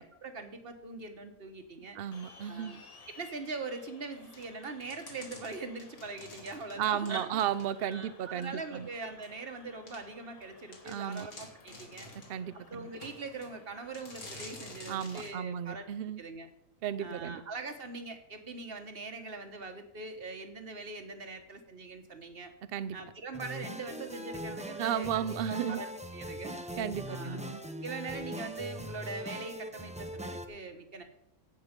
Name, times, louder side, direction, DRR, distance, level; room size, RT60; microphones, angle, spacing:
voice 1, 0.0-2.0 2.5-2.8 3.1-7.4 7.8-12.1 12.7-15.8 16.2-16.5 17.0-22.5 22.9-25.9 26.1-26.6 27.1-27.4 27.8-31.0, right 3 dB, 40° right, 7 dB, 1.4 m, -42 dB
voice 2, 2.0-2.8 6.8-8.9 10.9-11.3 12.3-12.9 14.9-16.2 16.8-17.4 22.7-23.0 24.8-25.8 26.8-27.6, right 9 dB, 55° right, 14 dB, 0.6 m, -34 dB
sound 1, 2.1-14.7, left 4 dB, 30° left, 0.8 m, -57 dB
sound 2, 4.3-8.0 8.4-8.5 9.2-9.3 9.9-10.0 10.4-10.5 10.7-12.4 13.0-13.5 13.9-15.4, left 2 dB, 55° left, 2.5 m, -49 dB
sound 3, 23.3-30.5, equal, 10° right, 0.5 m, -41 dB
16.5 x 6.4 x 5.2 m, 0.79 s
omnidirectional pair, 1.5 m